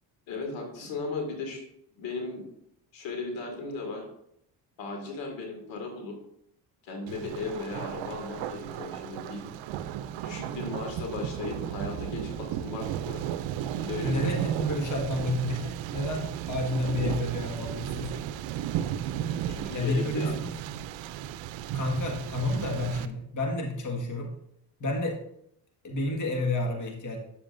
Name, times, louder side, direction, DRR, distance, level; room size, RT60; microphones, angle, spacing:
voice 1, 0.3-1.7 2.0-2.4 2.9-4.1 4.8-6.2 6.8-9.4 10.2-13.2 13.8-14.3 19.5-20.3, left 3 dB, 80° left, 1 dB, 2.2 m, -36 dB
Thunder, 7.1-23.1, right 10 dB, 80° right, 0.6 m, -34 dB
voice 2, 14.0-16.2 16.5-18.2 19.7-20.5 21.7-24.3 24.8-25.2 25.8-27.2, left 2 dB, 40° left, 1 dB, 1.8 m, -30 dB
9.7 x 7.1 x 2.6 m, 0.73 s
cardioid pair, 80°, 45 cm